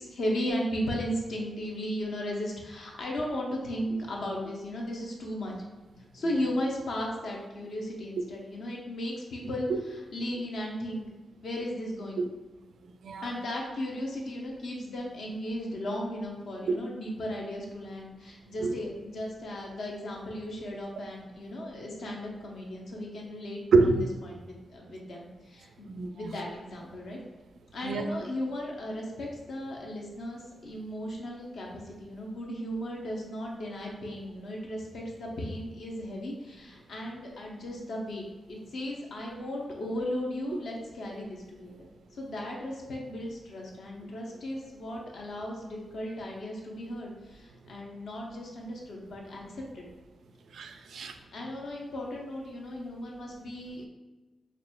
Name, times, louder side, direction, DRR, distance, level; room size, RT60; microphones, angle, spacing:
voice 1, 0.0-5.5 6.1-11.0 11.4-12.2 13.2-23.6 24.2-27.2 27.7-41.7 42.1-49.8 51.1-53.9, equal, 65° left, 0.8 m, -36 dB
voice 2, 23.7-24.1 25.9-26.3 27.8-28.1 50.5-51.2, right 4 dB, 75° right, 0.3 m, -26 dB
5.9 x 2.5 x 2.3 m
wide cardioid pair, 180°, 0 cm